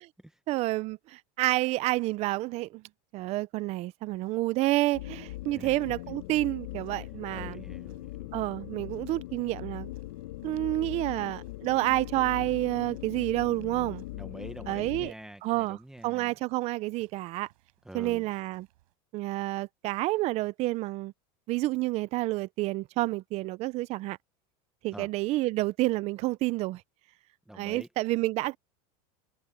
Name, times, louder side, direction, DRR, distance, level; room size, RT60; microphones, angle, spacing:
voice 1, 0.5-2.8 3.1-7.6 8.3-9.9 10.4-14.0 14.7-15.1 15.4-17.5 17.9-18.7 19.1-21.1 21.5-24.2 24.8-26.8 27.5-28.6, right 18 dB, 35° right, 0.5 m, -29 dB
sound 1, 4.1-18.9, right 20 dB, 75° right, 7.5 m, -66 dB
sound 2, 4.9-15.1, left 17 dB, 80° left, 1.2 m, -40 dB
voice 2, 7.3-8.4 14.1-16.3 17.8-18.3 24.9-25.1 27.5-27.9, right 1 dB, 5° right, 1.2 m, -46 dB
supercardioid pair, 150°, 18 cm